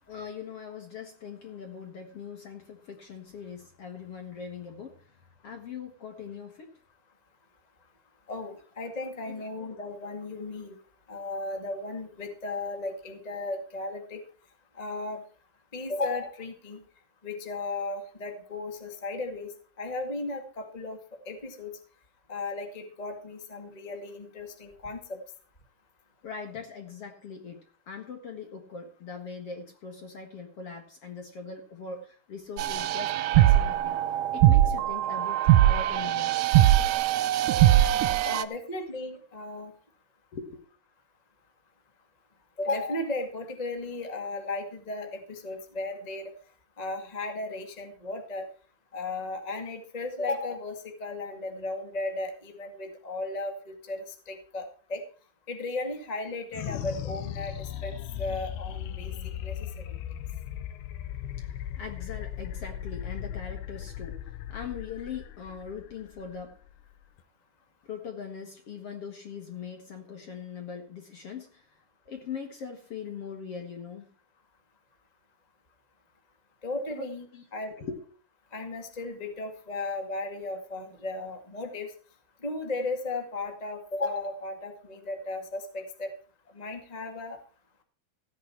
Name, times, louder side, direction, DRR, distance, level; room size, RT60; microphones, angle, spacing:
voice 1, 0.1-4.9 5.4-6.7 9.3-9.5 26.2-27.6 27.9-34.0 34.3-36.4 40.3-40.6 61.4-64.2 64.5-66.6 67.8-71.7 72.1-74.1 76.9-77.1 77.3-77.5 77.8-78.0, left 6 dB, 50° left, 5 dB, 2.0 m, -41 dB
voice 2, 8.3-10.7 11.1-14.2 14.8-15.2 15.7-16.8 17.2-19.5 19.8-21.0 21.2-21.7 22.3-25.2 38.2-39.7 42.6-46.3 46.8-48.4 48.9-54.6 54.9-55.0 55.5-59.1 59.4-59.5 76.6-77.2 77.5-77.7 78.5-81.9 82.4-86.1 86.5-87.4, left 2 dB, 20° left, 4 dB, 0.9 m, -35 dB
sound 1, 32.6-38.4, right 13 dB, 85° right, 1.8 m, -21 dB
sound 2, 56.5-67.2, left 10 dB, 80° left, 2.7 m, -37 dB
15.5 x 9.4 x 4.6 m, 0.40 s
omnidirectional pair, 4.6 m